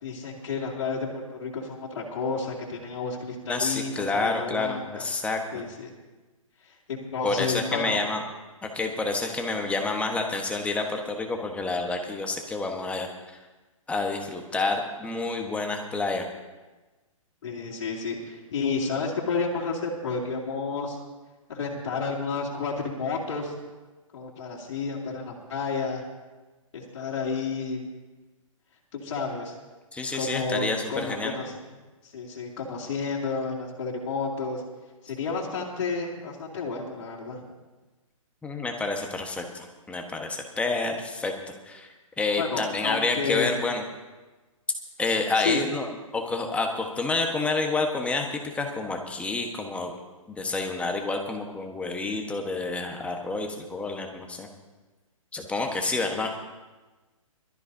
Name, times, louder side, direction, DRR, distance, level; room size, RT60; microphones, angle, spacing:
voice 1, 0.0-5.0 5.5-5.9 6.7-8.0 17.4-21.0 21.5-23.5 24.1-26.0 26.7-27.8 28.9-29.5 30.1-31.6 32.1-34.6 35.0-37.4 42.4-43.5 45.4-45.6, left 4 dB, 55° left, -4 dB, 3.0 m, -31 dB
voice 2, 3.5-5.6 7.2-8.2 8.6-13.1 13.9-16.3 29.9-31.3 38.4-41.3 41.7-41.9 42.2-43.8 45.0-45.9 46.1-49.9 50.3-54.5 55.3-56.3, left 3 dB, 5° left, 3 dB, 1.3 m, -29 dB
22.5 x 13.5 x 2.8 m, 1.2 s
hypercardioid pair, 135°, 18 cm